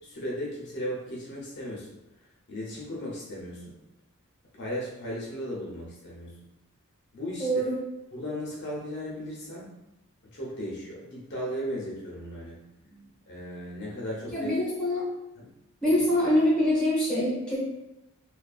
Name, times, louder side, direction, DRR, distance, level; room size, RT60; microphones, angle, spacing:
voice 1, 0.0-1.9 2.5-3.8 4.6-6.5 7.1-7.6 8.1-9.7 10.3-12.6 13.3-14.5 15.4-15.5, equal, 50° left, -4 dB, 0.6 m, -36 dB
voice 2, 7.4-7.8 14.3-15.0 15.8-17.6, left 1 dB, 5° left, -8 dB, 0.7 m, -24 dB
2.4 x 2.3 x 2.3 m, 0.91 s
head